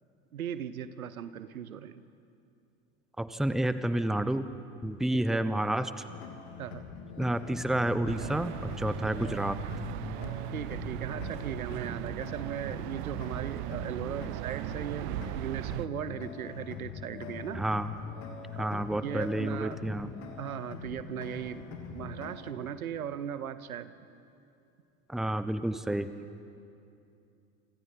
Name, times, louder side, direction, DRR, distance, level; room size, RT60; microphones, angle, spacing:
voice 1, 0.3-2.0 5.1-5.4 6.6-6.9 10.5-17.6 18.5-19.8 20.4-23.9, right 9 dB, 80° right, 14 dB, 0.9 m, -38 dB
voice 2, 3.2-4.4 4.8-5.9 7.2-9.6 17.5-17.9 18.6-20.1 25.1-26.1, right 1 dB, ahead, 12 dB, 0.8 m, -30 dB
sound 1, 6.1-22.5, left 6 dB, 60° left, 2.8 m, -43 dB
sound 2, 8.1-15.9, right 19 dB, 55° right, 0.5 m, -38 dB
28.5 x 25.5 x 4.2 m, 2.6 s
figure-of-eight pair, 70°, 42 cm